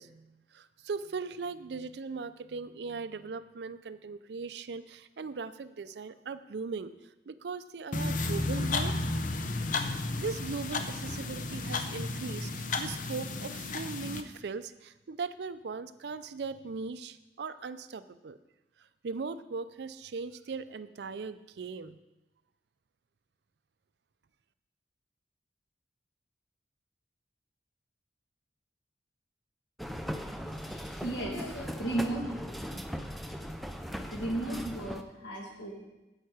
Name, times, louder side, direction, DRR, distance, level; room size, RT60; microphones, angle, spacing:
voice 1, 0.0-8.9 9.9-18.4 19.0-22.0, right 4 dB, 65° right, 13 dB, 0.4 m, -39 dB
sound 1, 7.9-14.2, left 2 dB, 45° left, 0.6 m, -33 dB
sound 2, 29.8-35.0, equal, ahead, 0.4 m, -39 dB
voice 2, 30.6-32.3 34.1-35.8, right 1 dB, 85° left, -1 dB, 2.3 m, -35 dB
8.9 x 8.1 x 4.8 m, 1.0 s
head